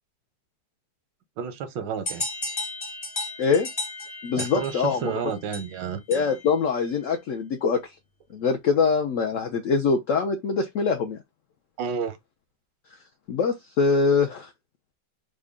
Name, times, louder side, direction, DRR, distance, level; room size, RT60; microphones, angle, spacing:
voice 1, 1.4-2.2 4.4-6.0 11.8-12.2, right 6 dB, 85° right, 1.4 m, -30 dB
sound 1, 2.1-6.6, left 2 dB, 30° left, 0.7 m, -34 dB
voice 2, 4.2-5.1 6.1-7.9 8.3-11.2 13.3-14.5, left 5 dB, 80° left, 0.7 m, -23 dB
3.8 x 2.2 x 3.5 m
omnidirectional pair, 1.9 m